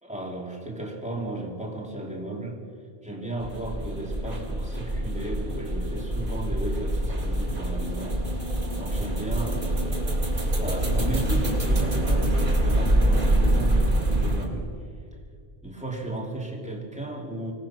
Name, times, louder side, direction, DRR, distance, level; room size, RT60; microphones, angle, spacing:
voice 1, 0.0-2.6 3.0-14.7 15.6-17.5, right 1 dB, 5° right, -1 dB, 3.1 m, -35 dB
sound 1, 3.4-14.5, right 1 dB, 55° right, 3.1 m, -25 dB
25.0 x 17.5 x 6.0 m, 2.3 s
omnidirectional pair, 1.0 m